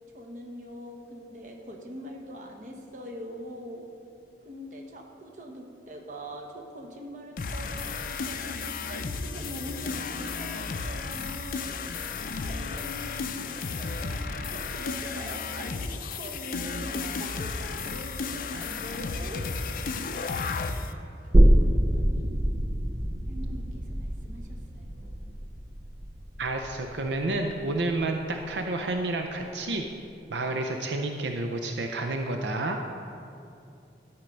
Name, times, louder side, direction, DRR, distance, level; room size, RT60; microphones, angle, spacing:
voice 1, 0.1-3.9 4.4-11.8 12.1-19.5 21.5-22.3 23.3-25.2, equal, 45° right, 1 dB, 1.0 m, -43 dB
sound 1, 7.4-20.9, left 4 dB, 50° left, 0.4 m, -33 dB
sound 2, 21.3-28.6 29.0-29.1, equal, 25° right, 0.4 m, -25 dB
voice 2, 26.4-29.8 30.3-32.8, right 2 dB, 80° right, 4 dB, 0.5 m, -30 dB
12.5 x 4.4 x 5.2 m, 2.6 s
head